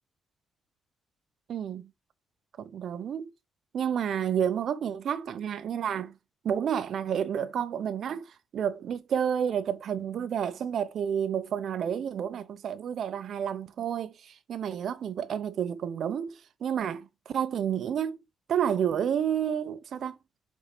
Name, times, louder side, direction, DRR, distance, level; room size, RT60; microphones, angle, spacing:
voice 1, 1.5-1.8 2.6-3.3 3.7-6.2 6.4-18.2 18.5-20.2, right 8 dB, 65° right, 0.8 m, -30 dB
5.1 x 4.2 x 5.0 m
cardioid pair, 90°, 0 cm